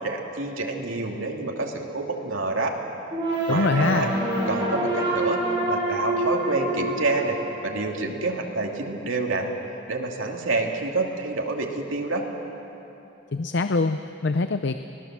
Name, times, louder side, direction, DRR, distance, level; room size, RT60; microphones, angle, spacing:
voice 1, 0.0-2.7 3.5-4.1 4.5-7.4 7.6-9.6 9.9-12.3, right 3 dB, 85° right, 1 dB, 2.5 m, -28 dB
sound 1, 3.1-8.1, right 1 dB, 25° right, 6.8 m, -27 dB
voice 2, 3.5-4.1 13.3-14.8, left 3 dB, 60° left, 9 dB, 0.6 m, -24 dB
25.0 x 18.5 x 7.5 m, 3.0 s
head